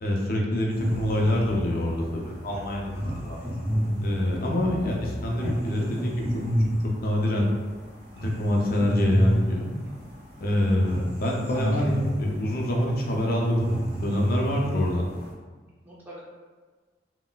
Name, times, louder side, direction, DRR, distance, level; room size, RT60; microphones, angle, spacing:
voice 1, 0.0-3.5 4.0-6.3 6.8-7.5 8.2-9.7 10.4-13.7 14.0-15.1, left 1 dB, 50° left, -1 dB, 0.5 m, -26 dB
sound 1, 0.7-9.4 9.7-15.3, equal, 35° right, 1.2 m, -30 dB
voice 2, 11.5-11.9 15.8-16.2, equal, 10° right, -8 dB, 0.8 m, -44 dB
3.8 x 2.1 x 2.3 m, 1.4 s
head